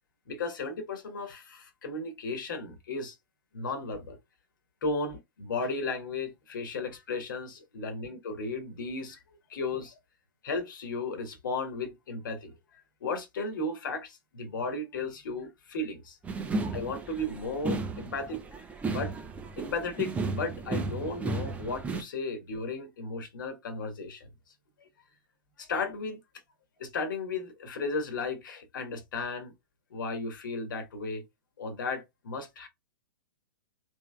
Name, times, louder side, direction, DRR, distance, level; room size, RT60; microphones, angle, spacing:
voice 1, 0.3-3.1 3.5-4.2 4.8-9.2 9.5-9.9 10.4-16.1 16.7-19.1 19.6-24.3 24.8-24.9 25.6-26.2 26.8-29.5 29.9-31.2 31.6-32.7, left 3 dB, 60° left, 1.3 m, -35 dB
drums.parade, 16.2-22.0, right 3 dB, 10° right, 0.6 m, -34 dB
3.4 x 3.4 x 2.3 m
figure-of-eight pair, 110°, 12 cm